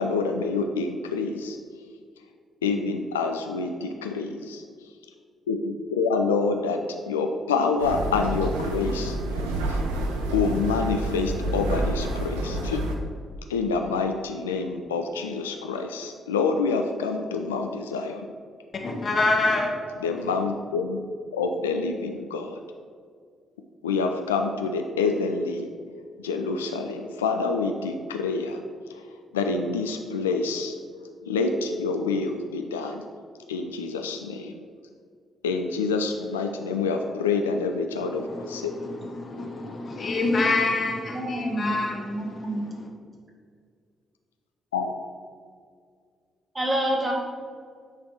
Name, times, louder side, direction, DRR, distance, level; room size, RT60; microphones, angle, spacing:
voice 1, 0.0-1.6 2.6-4.6 5.5-6.8 7.1-9.2 9.7-9.8 10.3-12.8 13.5-18.3 20.0-21.0 21.3-22.6 23.8-25.7 26.2-28.6 29.3-30.8 31.3-33.0 33.5-34.5 35.4-38.7 44.7-44.9, left 4 dB, 75° left, 5 dB, 0.3 m, -27 dB
sound 1, 7.8-13.0, right 1 dB, 75° right, 0.6 m, -28 dB
voice 2, 18.8-19.7 38.0-42.9, left 2 dB, 40° left, 0 dB, 1.2 m, -27 dB
voice 3, 41.1-42.6 46.5-47.1, right 1 dB, 25° right, -1 dB, 1.7 m, -28 dB
8.9 x 3.4 x 4.7 m, 2.1 s
figure-of-eight pair, 40°, 0 cm